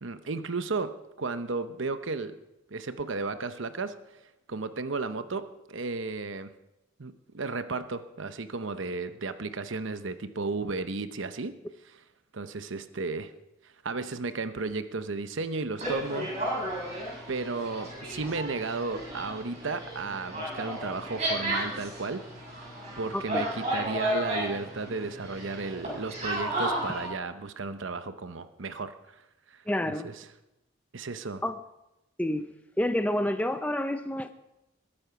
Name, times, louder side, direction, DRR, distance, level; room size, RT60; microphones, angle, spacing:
voice 1, 0.0-2.4 2.7-3.9 4.5-6.5 7.0-11.6 11.9-12.0 12.3-13.3 13.8-16.3 17.3-22.2 23.0-30.2 30.9-31.4, right 3 dB, 70° right, 11 dB, 0.8 m, -34 dB
sound 1, 15.8-27.1, right 1 dB, 30° right, 7.0 m, -33 dB
voice 2, 29.7-30.1 31.4-31.5 32.2-32.5 32.8-34.3, left 1 dB, 5° left, 8 dB, 0.5 m, -28 dB
21.5 x 8.8 x 5.9 m, 0.95 s
head